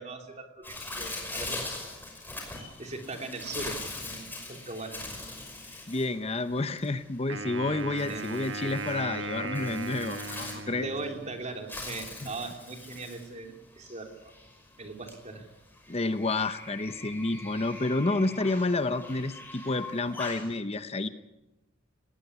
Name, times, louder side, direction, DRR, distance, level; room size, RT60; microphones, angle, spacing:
voice 1, 0.0-1.6 2.8-5.0 8.0-8.3 10.8-14.3 14.8-15.5, right 3 dB, 35° right, 4 dB, 3.2 m, -39 dB
Bird, 0.6-20.5, left 2 dB, 10° left, 5.5 m, -42 dB
voice 2, 5.9-10.9 15.9-21.1, left 2 dB, 30° left, 10 dB, 0.9 m, -30 dB
Wind instrument woodwind instrument, 7.3-11.6, right 3 dB, 70° right, 1.6 m, -37 dB
20.0 x 18.5 x 9.5 m, 0.93 s
head